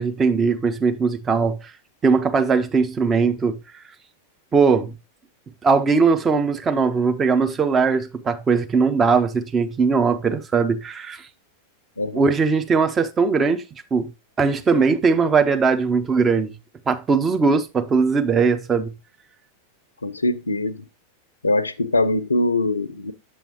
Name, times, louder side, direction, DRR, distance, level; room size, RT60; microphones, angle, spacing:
voice 1, 0.0-1.6 2.0-3.6 4.5-4.9 5.6-11.3 12.1-13.6 13.9-14.1 14.4-16.5 16.9-18.9, right 5 dB, 20° right, 0.8 m, -20 dB
voice 2, 20.0-20.8 21.4-23.1, left 2 dB, 80° left, 0.5 m, -22 dB
7.5 x 7.1 x 2.9 m
figure-of-eight pair, 90°, 0 cm